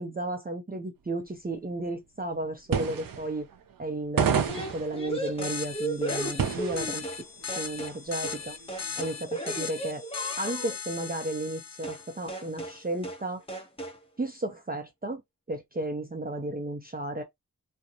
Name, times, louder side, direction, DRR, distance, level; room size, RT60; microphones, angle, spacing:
voice 1, 0.0-3.5 3.8-7.0 7.5-8.6 9.0-10.0 10.4-13.4 14.2-15.2 15.5-17.2, right 2 dB, 25° right, 0.6 m, -33 dB
sound 1, 2.4-2.5 2.7-3.9 4.2-7.1 7.4-7.5 8.1-9.1, right 7 dB, 80° right, 0.5 m, -30 dB
sound 2, 4.5-7.2 7.5-8.4 8.7-10.8 11.8-12.0 12.3-12.8 13.0-13.2 13.5-14.0, right 2 dB, 15° left, 0.9 m, -35 dB
sound 3, 5.4-12.6, left 7 dB, 50° left, 0.5 m, -38 dB
2.5 x 2.2 x 2.8 m
cardioid pair, 45°, 33 cm